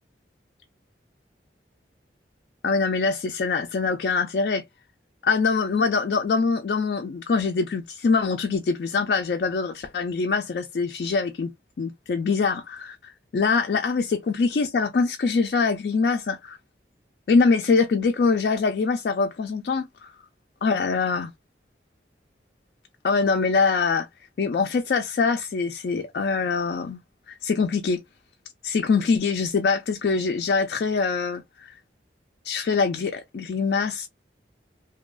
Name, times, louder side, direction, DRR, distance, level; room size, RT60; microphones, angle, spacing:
voice 1, 2.6-4.6 5.2-11.5 11.8-16.6 17.3-20.1 20.6-21.3 23.0-24.1 24.4-27.0 27.3-28.0 28.6-31.8 32.4-34.1, left 4 dB, 60° left, 0.3 m, -24 dB
2.7 x 2.4 x 2.2 m
head